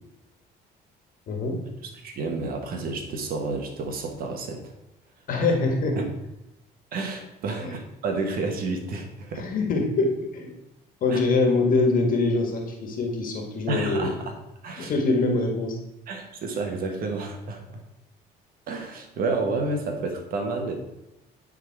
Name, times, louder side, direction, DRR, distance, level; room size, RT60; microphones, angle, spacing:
voice 1, 1.3-1.6 5.3-6.0 7.6-7.7 9.3-10.5 11.0-14.1 14.8-15.8, left 3 dB, 55° left, 3 dB, 1.7 m, -24 dB
voice 2, 2.0-4.7 6.0-6.1 6.9-9.5 11.1-11.2 13.7-14.3 14.6-14.9 16.1-17.8 18.7-20.7, right 3 dB, 60° right, 4 dB, 1.5 m, -30 dB
10.0 x 3.9 x 4.7 m, 0.92 s
cardioid pair, 110°, 17 cm